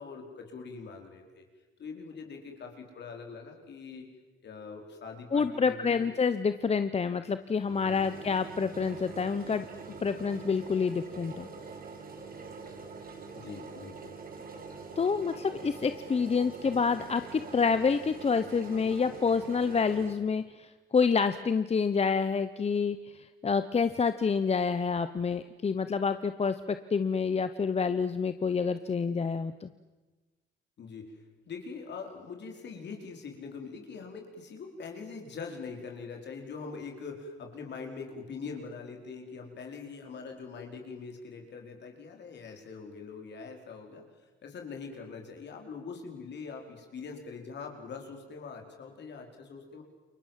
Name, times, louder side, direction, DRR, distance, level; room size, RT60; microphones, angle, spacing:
voice 1, 0.0-1.4 1.8-4.1 4.4-6.1 7.9-8.3 13.3-14.1 30.8-31.1 31.5-44.0 44.4-49.8, left 5 dB, 60° left, 3 dB, 4.9 m, -43 dB
voice 2, 5.3-9.7 10.0-11.5 15.0-29.7, left 5 dB, 30° left, 11 dB, 0.9 m, -28 dB
sound 1, 7.6-20.1, right 4 dB, 45° right, 4.3 m, -45 dB
29.0 x 22.5 x 7.6 m, 1.2 s
cardioid pair, 90°, 20 cm